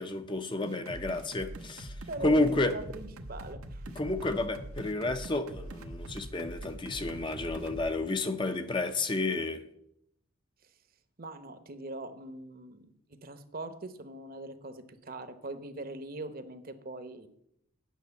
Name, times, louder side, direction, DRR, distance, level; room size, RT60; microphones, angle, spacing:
voice 1, 0.0-2.7 4.0-9.6, left 2 dB, 20° left, 0.6 m, -31 dB
sound 1, 0.6-7.9, right 1 dB, 85° right, 1.1 m, -43 dB
voice 2, 2.1-3.9 10.6-10.7 11.2-12.9 13.2-17.3, right 2 dB, 40° right, 0.9 m, -42 dB
9.2 x 6.2 x 8.3 m
head